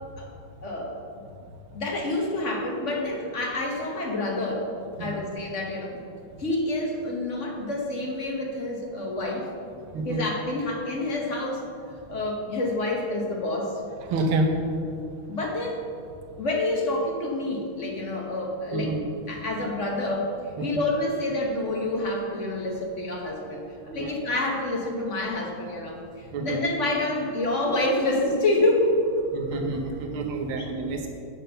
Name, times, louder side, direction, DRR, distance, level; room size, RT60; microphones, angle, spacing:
voice 1, 0.6-0.9 1.7-4.7 5.0-6.0 6.4-9.5 10.0-11.7 12.1-13.8 15.3-15.8 16.4-18.9 19.3-20.3 20.6-29.6 30.6-30.7, left 2 dB, 40° left, 0 dB, 1.2 m, -28 dB
voice 2, 14.1-14.5 18.7-19.0 24.0-24.1 26.3-26.6 29.3-31.1, right 2 dB, 80° right, 3 dB, 1.8 m, -28 dB
7.8 x 6.0 x 6.7 m, 2.4 s
omnidirectional pair, 2.3 m